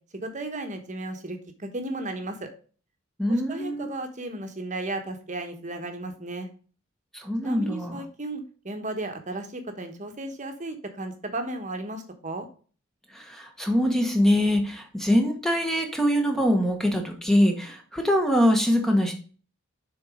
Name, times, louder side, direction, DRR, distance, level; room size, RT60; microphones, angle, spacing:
voice 1, 0.1-2.5 3.3-6.5 7.4-12.5, right 2 dB, 35° right, 6 dB, 1.2 m, -34 dB
voice 2, 3.2-3.9 7.1-8.0 13.1-19.1, equal, ahead, 3 dB, 1.1 m, -23 dB
6.9 x 4.3 x 5.0 m, 0.39 s
head